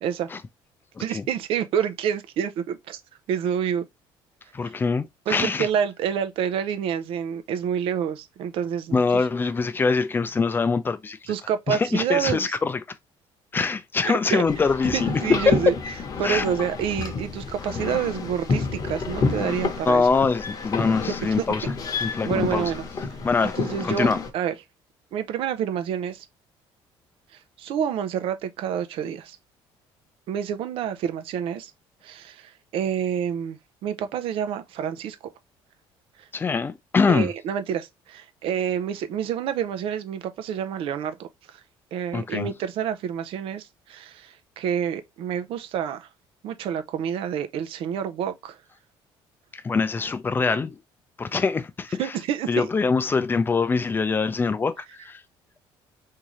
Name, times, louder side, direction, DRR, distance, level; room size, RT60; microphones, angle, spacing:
voice 1, 1.0-3.0 3.3-3.9 4.6-4.7 5.3-9.0 11.3-12.6 14.0-14.4 14.9-15.8 16.2-20.1 21.2-21.3 22.0-22.8 23.6-24.5 25.1-26.2 27.6-29.4 30.3-31.7 32.0-35.2 37.1-41.3 41.9-46.1 46.4-48.6 52.0-52.7, right 8 dB, 70° right, 0.5 m, -28 dB
voice 2, 4.5-5.7 8.9-11.2 11.7-12.8 13.5-15.5 16.2-16.4 19.8-21.7 22.0-22.7 23.2-23.6 23.8-24.2 36.3-37.3 42.1-42.5 49.5-50.8 51.2-52.1 52.5-55.2, left 4 dB, 20° left, 0.4 m, -23 dB
sound 1, 14.5-24.3, left 4 dB, 40° left, 0.9 m, -29 dB
3.6 x 2.8 x 3.0 m
cardioid pair, 120°, 10 cm